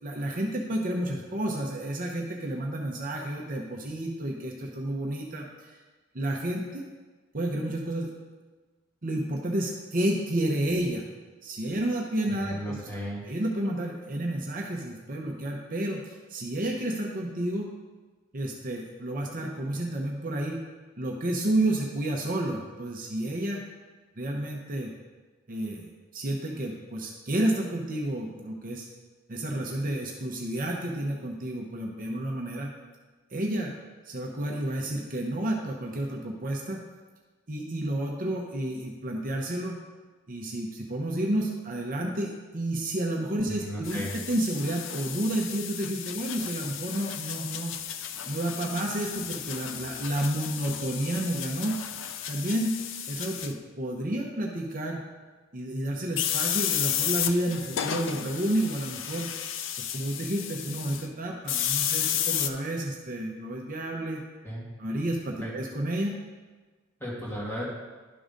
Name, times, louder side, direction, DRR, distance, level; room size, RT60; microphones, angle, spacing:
voice 1, 0.0-5.8 6.1-6.8 7.3-8.1 9.0-11.1 11.4-12.8 13.2-17.7 18.3-20.6 21.0-23.6 24.2-24.9 25.5-28.9 29.3-32.7 33.3-33.7 34.0-36.8 37.5-39.8 40.3-47.8 48.3-51.8 52.3-52.7 53.1-55.0 55.5-59.3 59.8-64.2 64.8-66.1, right 1 dB, 40° right, 0 dB, 0.8 m, -30 dB
voice 2, 12.4-13.3 43.5-44.1 64.4-64.7 65.4-65.5 67.0-67.6, equal, 10° left, -7 dB, 2.2 m, -35 dB
sound 1, 43.8-53.5 56.2-61.1 61.5-62.5, left 9 dB, 60° left, 0.5 m, -33 dB
11.0 x 3.9 x 5.1 m, 1.3 s
head